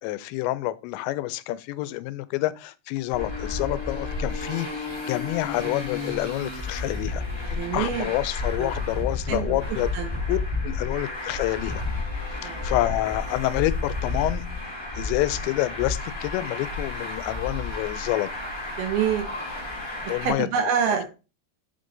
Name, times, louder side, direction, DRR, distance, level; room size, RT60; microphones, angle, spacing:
voice 1, 0.0-9.9 10.3-10.4 10.6-11.8 12.4-14.4 14.9-18.3 20.1-20.5, left 17 dB, 90° left, 2.8 m, -28 dB
Traffic noise roadway noise, 3.1-20.3, left 3 dB, 15° left, 1.0 m, -31 dB
voice 2, 7.5-8.1 8.6-8.7 9.3-9.6 9.9-10.2 12.4-12.7 18.8-19.3 20.2-21.0, right 7 dB, 75° right, 2.3 m, -26 dB
8.2 x 3.7 x 3.8 m
omnidirectional pair, 5.0 m